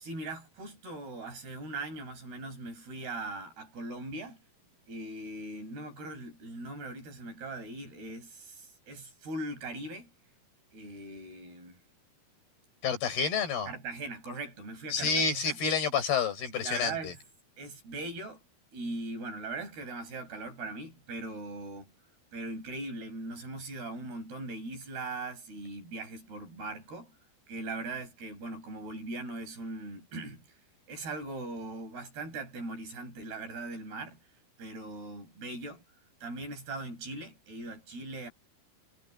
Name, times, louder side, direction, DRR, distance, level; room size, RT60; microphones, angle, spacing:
voice 1, 0.0-4.4 4.9-10.1 10.7-11.8 13.7-15.6 16.6-17.2 17.6-18.4 18.7-21.9 22.3-27.1 27.5-30.4 30.9-34.2 34.6-35.8 36.2-38.3, right 2 dB, 85° right, 9.3 m, -40 dB
voice 2, 12.8-13.7 14.9-17.1, left 5 dB, 80° left, 7.0 m, -29 dB
omnidirectional pair, 4.5 m